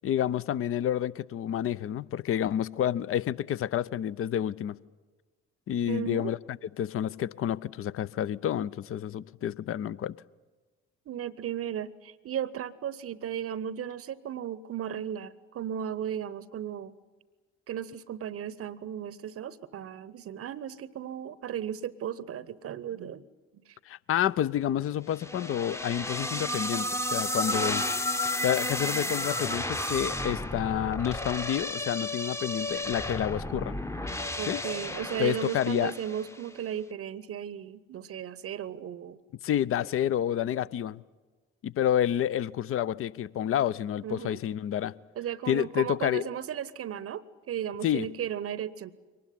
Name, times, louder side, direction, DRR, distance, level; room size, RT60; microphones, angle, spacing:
voice 1, 0.0-4.8 5.7-10.1 23.9-27.9 28.4-33.7 34.5-34.6 35.2-35.9 39.4-41.0 41.6-44.9 45.5-46.3 47.8-48.1, left 10 dB, 40° left, 19 dB, 0.7 m, -29 dB
voice 2, 5.9-6.3 11.1-17.0 17.7-23.2 23.7-23.8 34.4-39.2 44.0-44.4 45.2-48.9, right 9 dB, 45° right, 20 dB, 0.9 m, -35 dB
sound 1, 25.2-36.4, left 1 dB, 10° left, 0.9 m, -32 dB
23.5 x 19.5 x 9.9 m, 1.3 s
figure-of-eight pair, 45°, 33 cm